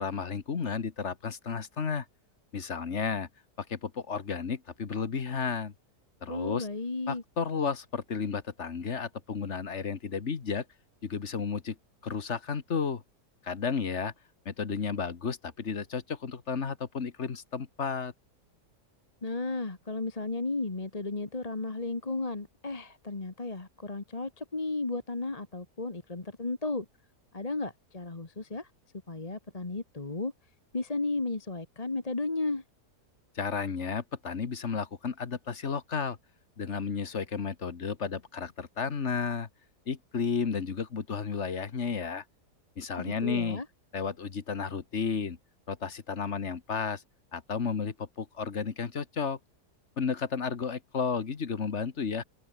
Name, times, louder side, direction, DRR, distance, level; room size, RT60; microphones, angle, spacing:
voice 1, 0.0-2.0 2.5-3.3 3.7-5.7 6.2-6.7 7.1-10.6 11.0-11.8 12.0-13.0 13.4-14.1 14.4-18.1 33.3-36.2 36.6-39.5 39.9-42.2 42.8-43.6 43.9-45.4 45.7-47.0 47.3-49.4 50.0-52.2, left 5 dB, 45° left, 1.7 m, -32 dB
voice 2, 6.3-7.2 19.2-26.8 27.3-28.7 29.1-30.3 30.7-32.6 43.0-43.6, left 3 dB, 25° left, 1.6 m, -34 dB
omnidirectional pair, 1.8 m